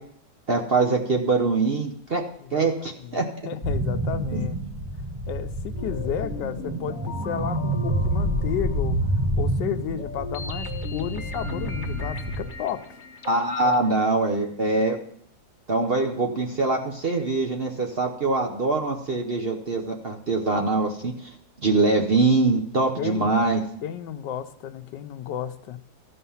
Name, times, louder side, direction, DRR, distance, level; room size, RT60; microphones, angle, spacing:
voice 1, 0.5-2.2 2.5-3.3 4.3-4.5 13.3-15.0 15.7-21.3 21.6-23.6, right 3 dB, 45° right, 2 dB, 0.8 m, -23 dB
voice 2, 3.0-4.6 5.3-9.0 9.4-12.8 13.6-13.8 23.0-23.3 23.8-25.8, left 9 dB, 80° left, 10 dB, 1.3 m, -32 dB
sound 1, 3.6-12.5, right 1 dB, 15° right, 0.8 m, -28 dB
sound 2, 5.8-14.1, left 3 dB, 40° left, 0.7 m, -39 dB
14.5 x 5.5 x 5.6 m, 0.66 s
omnidirectional pair, 1.9 m